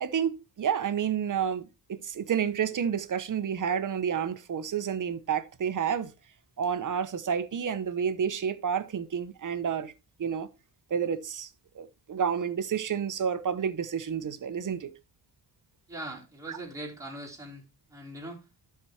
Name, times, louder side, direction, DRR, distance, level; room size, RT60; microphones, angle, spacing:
voice 1, 0.0-6.1 6.6-9.9 10.2-10.5 10.9-11.5 11.7-14.9 16.5-16.6, right 7 dB, 50° right, 1.0 m, -30 dB
voice 2, 15.9-17.6 17.9-18.4, right 1 dB, 10° right, 4.0 m, -40 dB
12.0 x 4.8 x 4.3 m
cardioid pair, 115°, 40 cm